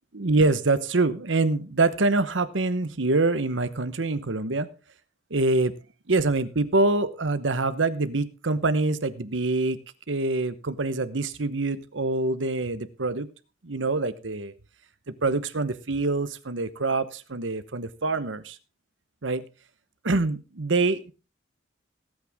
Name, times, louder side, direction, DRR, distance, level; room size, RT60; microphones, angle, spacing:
voice 1, 0.1-4.7 5.3-5.7 6.1-9.8 10.1-13.3 13.6-14.5 15.2-18.6 19.2-19.4 20.0-21.1, right 3 dB, 80° right, 13 dB, 1.0 m, -25 dB
17.5 x 9.0 x 3.6 m, 0.33 s
head